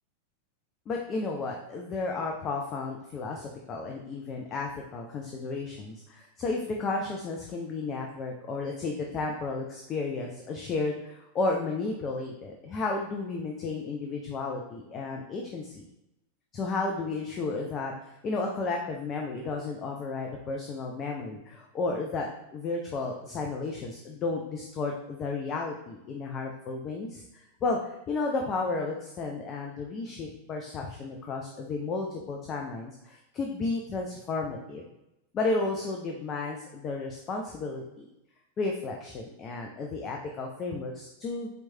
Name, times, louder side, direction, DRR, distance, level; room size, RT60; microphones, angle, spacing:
voice 1, 0.9-15.8 16.5-34.8 35.3-38.1 38.6-41.5, left 3 dB, 30° left, 1 dB, 0.4 m, -33 dB
4.4 x 3.0 x 2.7 m, 0.89 s
figure-of-eight pair, 90°, 0 cm